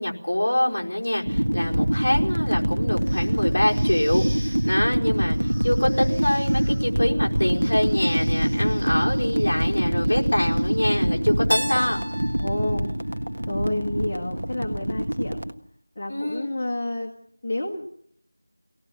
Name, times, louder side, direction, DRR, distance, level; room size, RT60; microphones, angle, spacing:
voice 1, 0.0-12.0 16.1-16.5, left 1 dB, 40° left, -2 dB, 4.6 m, -25 dB
sound 1, 1.3-15.5, equal, 70° right, 1.7 m, -24 dB
sound 2, 2.9-11.2, right 1 dB, 10° right, 6.8 m, -47 dB
Keyboard (musical), 11.5-14.3, equal, 90° right, 1.4 m, -33 dB
voice 2, 12.4-12.9 13.5-15.4 15.9-17.1 17.4-17.9, left 1 dB, 25° left, -1 dB, 1.7 m, -29 dB
25.0 x 18.5 x 7.4 m, 0.69 s
figure-of-eight pair, 170°, 0 cm